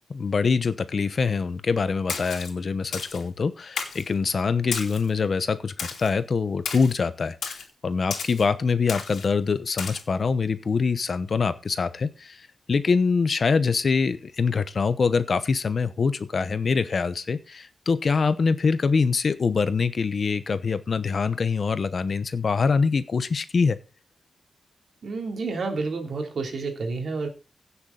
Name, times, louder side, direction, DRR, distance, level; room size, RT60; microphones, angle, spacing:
voice 1, 0.1-7.6 7.8-23.8, left 5 dB, 45° left, 12 dB, 0.9 m, -24 dB
Splash splatter, 2.1-2.5 2.9-3.2 3.8-4.1 4.7-5.1 5.8-6.1 6.7-6.9 7.4-7.7 8.1-8.4 8.9-9.3 9.8-10.0, left 5 dB, 85° left, 2.9 m, -33 dB
voice 2, 25.0-27.3, right 4 dB, 55° right, 4 dB, 3.0 m, -29 dB
16.5 x 7.2 x 3.9 m, 0.29 s
wide cardioid pair, 160°, 0 cm